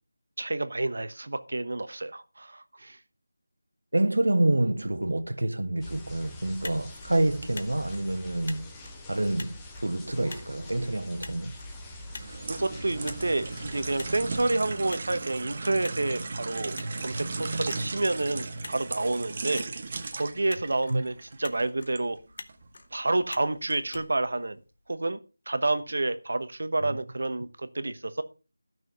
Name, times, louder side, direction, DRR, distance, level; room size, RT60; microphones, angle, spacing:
voice 1, 0.4-3.0 12.5-19.6 20.1-22.2 22.9-24.6 24.9-25.2 25.5-28.2, right 2 dB, 65° right, 1.1 m, -29 dB
voice 2, 3.9-8.6 9.1-11.6 20.9-21.0 26.8-27.0, right 1 dB, 80° right, 1.4 m, -27 dB
sound 1, 5.8-14.5, left 1 dB, 10° left, 1.0 m, -45 dB
Motor vehicle (road), 6.4-25.0, left 3 dB, 45° left, 1.2 m, -48 dB
sound 2, 12.1-22.0 22.5-22.7, right 3 dB, 30° right, 1.1 m, -36 dB
12.0 x 6.3 x 5.2 m
figure-of-eight pair, 170°, 0 cm